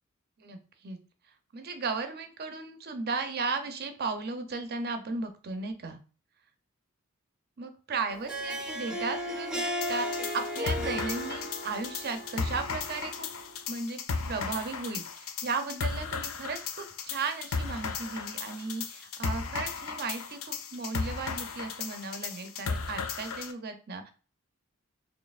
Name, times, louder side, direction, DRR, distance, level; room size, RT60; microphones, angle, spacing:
voice 1, 1.5-6.0 7.6-13.3 13.7-14.0 14.3-24.1, right 4 dB, 50° right, 7 dB, 0.6 m, -35 dB
Harp, 8.1-13.6, equal, 5° right, 0.6 m, -36 dB
sound 1, 9.8-23.5, left 5 dB, 80° left, 0.5 m, -35 dB
4.1 x 3.0 x 2.4 m, 0.36 s
head